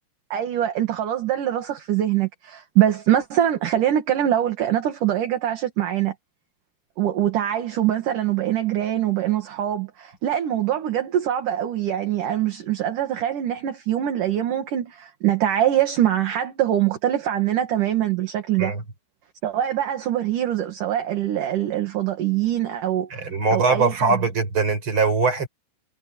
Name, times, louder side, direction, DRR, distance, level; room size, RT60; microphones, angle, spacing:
voice 1, 0.3-6.1 7.0-18.7 19.4-23.2 23.5-24.2, right 11 dB, 55° right, 2.9 m, -23 dB
voice 2, 23.1-25.5, right 4 dB, 25° right, 5.5 m, -21 dB
omnidirectional pair, 5.4 m